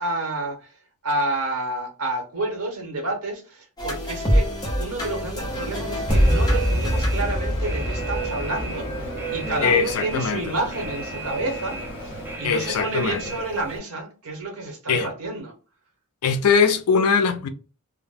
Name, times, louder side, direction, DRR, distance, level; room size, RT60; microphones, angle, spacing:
voice 1, 0.0-4.5 4.8-15.5, right 2 dB, 70° right, 1.0 m, -30 dB
sound 1, 3.8-9.8, equal, 20° left, 0.7 m, -26 dB
sound 2, 5.4-12.4, left 1 dB, 55° left, 0.8 m, -37 dB
Alarm, 6.1-13.8, equal, 10° right, 0.4 m, -28 dB
voice 2, 9.6-10.4 12.4-13.2 14.9-15.1 16.2-17.5, left 5 dB, 70° left, 0.4 m, -21 dB
2.2 x 2.1 x 3.3 m
head